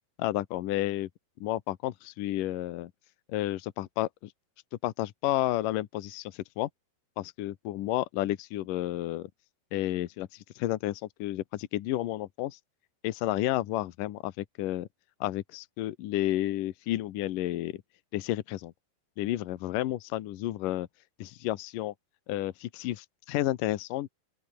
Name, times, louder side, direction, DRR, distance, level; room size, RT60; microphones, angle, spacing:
voice 1, 0.2-1.1 1.4-2.9 3.3-4.3 4.8-6.7 7.2-9.3 9.7-12.6 13.0-14.9 15.2-17.8 18.1-18.7 19.2-20.9 21.2-21.9 22.3-24.1, left 15 dB, 85° left, 1.9 m, -31 dB
open air
omnidirectional pair, 5.5 m